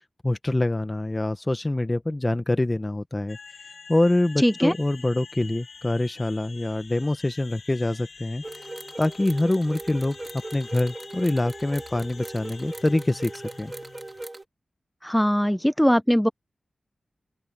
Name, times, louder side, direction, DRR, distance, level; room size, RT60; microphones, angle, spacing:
voice 1, 0.2-3.4 3.9-8.4 9.0-10.2 10.5-13.7, left 1 dB, 25° left, 1.2 m, -25 dB
sound 1, 3.3-14.3, left 5 dB, 75° left, 6.5 m, -47 dB
voice 2, 4.4-4.7 15.0-16.3, equal, 5° left, 0.5 m, -20 dB
sound 2, 8.4-14.4, right 2 dB, 25° right, 2.3 m, -39 dB
open air
cardioid pair, 60°, 0 cm